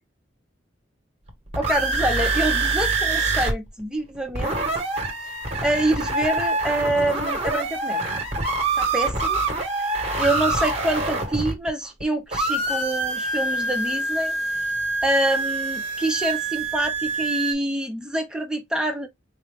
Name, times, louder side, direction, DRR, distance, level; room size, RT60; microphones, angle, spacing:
sound 1, 1.3-3.5 3.8-3.9 4.1-12.0 12.3-17.5, right 3 dB, 35° right, 1.0 m, -25 dB
voice 1, 1.5-4.8 5.6-8.0 8.8-9.4 9.8-9.9 10.2-14.3 15.0-19.1, right 1 dB, 5° right, 0.6 m, -26 dB
3.9 x 2.2 x 3.4 m
head